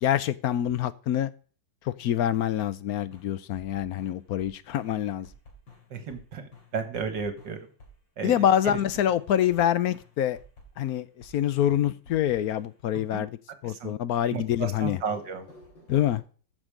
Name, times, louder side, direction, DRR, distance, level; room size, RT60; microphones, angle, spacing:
voice 1, 0.0-1.3 1.8-5.3 8.2-10.4 10.8-15.0 15.9-16.2, left 11 dB, 70° left, 1.0 m, -26 dB
sound 1, 3.1-4.5 4.8-6.2 6.5-9.7 9.9-11.3 11.6-12.9 14.5-16.2, left 1 dB, 90° left, 3.8 m, -51 dB
voice 2, 5.9-7.6 8.2-8.8 13.1-13.3 13.6-13.9 14.3-15.5, right 5 dB, 75° right, 2.1 m, -33 dB
14.0 x 6.3 x 5.0 m
omnidirectional pair, 2.0 m